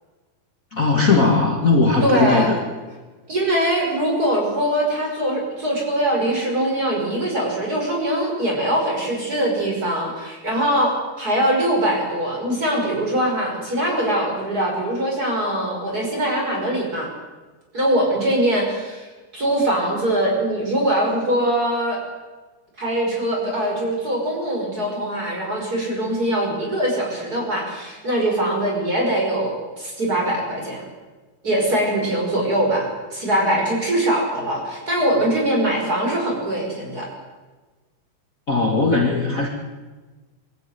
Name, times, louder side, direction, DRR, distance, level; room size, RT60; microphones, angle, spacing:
voice 1, 0.7-2.6 38.5-39.5, left 3 dB, 45° left, 1 dB, 1.1 m, -18 dB
voice 2, 2.0-2.5 3.3-17.1 17.7-19.1 19.3-22.0 22.8-30.9 31.4-37.1, right 1 dB, 20° right, 0 dB, 6.0 m, -22 dB
23.0 x 14.0 x 9.5 m, 1.3 s
omnidirectional pair, 4.9 m